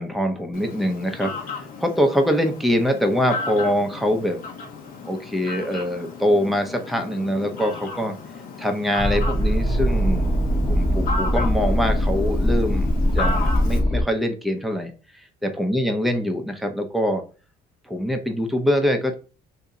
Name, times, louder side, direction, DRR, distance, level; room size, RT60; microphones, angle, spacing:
voice 1, 0.0-4.4 5.1-8.1 8.6-10.3 10.7-12.9 13.2-17.2 17.9-19.1, equal, ahead, 4 dB, 0.7 m, -24 dB
Fowl, 0.5-13.8, left 3 dB, 55° left, 1.0 m, -34 dB
sound 1, 9.0-14.0, equal, 20° left, 1.0 m, -21 dB
2.8 x 2.7 x 3.6 m, 0.35 s
cardioid pair, 110°, 17 cm